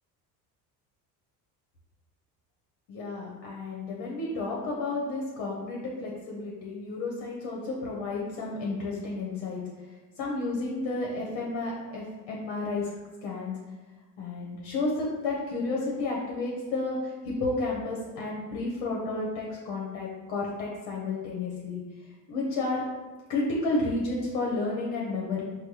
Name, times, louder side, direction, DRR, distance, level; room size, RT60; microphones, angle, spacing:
voice 1, 2.9-9.6 10.2-12.9 13.2-13.5 14.2-17.0 17.3-21.8 22.3-22.8 23.3-25.4, left 3 dB, 60° left, -3 dB, 0.9 m, -31 dB
4.5 x 2.2 x 2.9 m, 1.2 s
hypercardioid pair, 65°, 49 cm